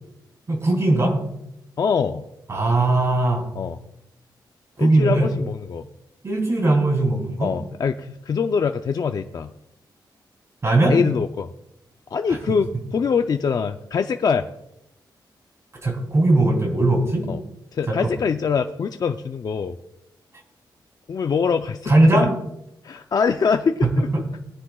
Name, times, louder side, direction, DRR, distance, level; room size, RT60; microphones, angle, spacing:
voice 1, 0.5-1.2 2.5-3.5 4.8-5.3 6.2-7.5 10.6-11.0 12.3-12.6 15.8-17.3 17.9-18.1 21.8-22.3 23.8-23.9, right 2 dB, 35° right, 1 dB, 3.3 m, -19 dB
voice 2, 1.8-2.3 3.6-3.8 4.8-5.9 7.4-9.5 10.9-11.5 12.1-14.5 17.3-17.4 17.7-19.8 21.1-22.2 22.8-24.1, left 6 dB, 50° left, 6 dB, 0.5 m, -23 dB
20.5 x 9.9 x 2.4 m, 0.83 s
wide cardioid pair, 115°, 8 cm